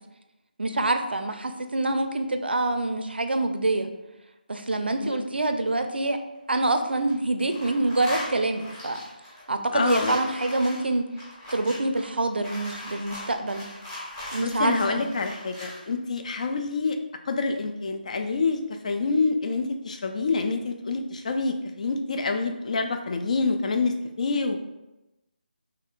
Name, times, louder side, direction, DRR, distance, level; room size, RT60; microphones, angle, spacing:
voice 1, 0.6-3.9 4.5-6.2 6.5-9.0 9.5-11.0 11.5-13.7 14.3-15.1, right 2 dB, 85° right, 7 dB, 0.4 m, -26 dB
sound 1, 6.3-7.1 7.4-15.8, left 1 dB, 20° left, 0.9 m, -39 dB
voice 2, 9.7-10.2 14.4-17.0 17.3-24.6, left 4 dB, 45° left, 6 dB, 0.3 m, -27 dB
3.5 x 3.2 x 2.4 m, 0.98 s
figure-of-eight pair, 160°, 5 cm